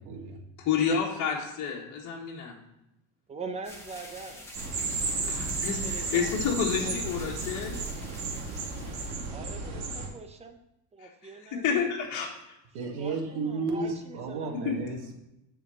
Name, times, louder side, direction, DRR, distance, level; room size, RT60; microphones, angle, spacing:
voice 1, 0.0-0.4 12.7-15.1, right 3 dB, 60° right, 1 dB, 1.8 m, -33 dB
voice 2, 0.6-2.6 5.3-7.8 11.0-12.3 14.5-14.8, left 6 dB, 40° left, -3 dB, 1.8 m, -30 dB
voice 3, 3.3-4.5 5.2-5.4 5.8-6.4 6.8-7.4 9.3-10.6 10.9-11.9 12.8-14.8, right 4 dB, 15° right, 6 dB, 0.9 m, -43 dB
sound 1, 3.6-9.3, left 1 dB, 5° left, 1.3 m, -47 dB
sound 2, 4.5-10.1, right 3 dB, 85° right, 2.2 m, -33 dB
7.1 x 4.6 x 6.3 m, 0.88 s
supercardioid pair, 120°, 44 cm